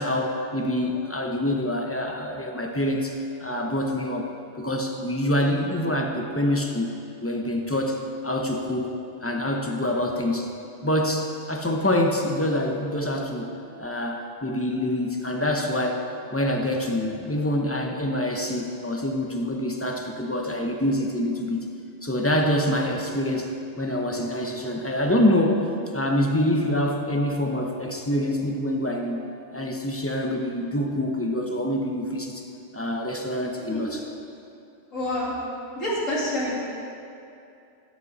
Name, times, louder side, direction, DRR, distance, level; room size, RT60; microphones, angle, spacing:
voice 1, 0.0-4.3 4.6-6.9 7.2-9.0 9.2-10.5 10.8-13.5 13.8-16.0 16.3-21.7 22.0-25.7 25.9-29.3 29.5-32.4 32.7-34.0, left 1 dB, 15° left, 1 dB, 0.7 m, -26 dB
voice 2, 34.9-35.4 35.8-36.5, left 1 dB, 85° left, -6 dB, 3.1 m, -27 dB
16.5 x 8.3 x 4.2 m, 2.7 s
omnidirectional pair, 1.3 m